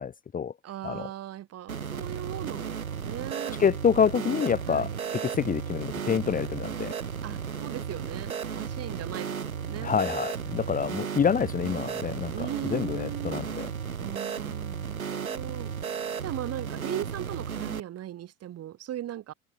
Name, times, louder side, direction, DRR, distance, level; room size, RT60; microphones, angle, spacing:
voice 1, 0.0-0.5 0.8-1.1 3.6-6.9 9.8-13.7, left 7 dB, 20° left, 1.2 m, -27 dB
voice 2, 0.6-3.6 4.7-4.9 7.2-9.9 12.3-13.5 14.0-15.7 16.2-19.3, right 12 dB, 35° right, 3.1 m, -38 dB
sound 1, 1.7-17.8, right 7 dB, 80° right, 4.7 m, -34 dB
figure-of-eight pair, 80°, 42 cm